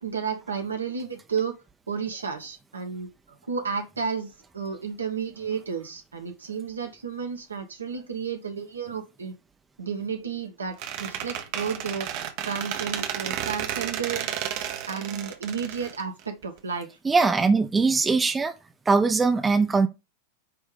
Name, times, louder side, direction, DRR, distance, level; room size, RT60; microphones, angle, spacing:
voice 1, 0.0-1.6 1.9-9.3 9.8-12.1 12.4-14.3 14.9-16.9, right 6 dB, 75° right, 1.7 m, -32 dB
Squeak, 10.8-16.6, right 10 dB, 45° right, 1.3 m, -32 dB
voice 2, 17.0-18.5 18.9-19.9, right 4 dB, 15° right, 1.1 m, -21 dB
9.4 x 3.5 x 5.3 m
figure-of-eight pair, 90°, 0 cm